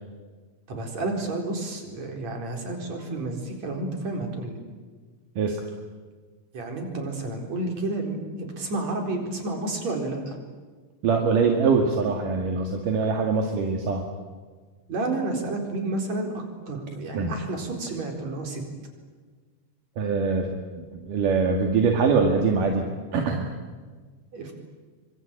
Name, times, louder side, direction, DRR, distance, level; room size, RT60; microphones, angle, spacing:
voice 1, 0.7-4.6 6.5-10.4 14.9-16.3 16.7-18.6 24.3-24.5, right 2 dB, 35° right, 3 dB, 5.0 m, -30 dB
voice 2, 11.0-14.0 17.1-17.3 20.0-22.8 23.1-23.5, right 5 dB, 55° right, 2 dB, 2.8 m, -23 dB
26.0 x 25.0 x 8.9 m, 1.4 s
omnidirectional pair, 5.9 m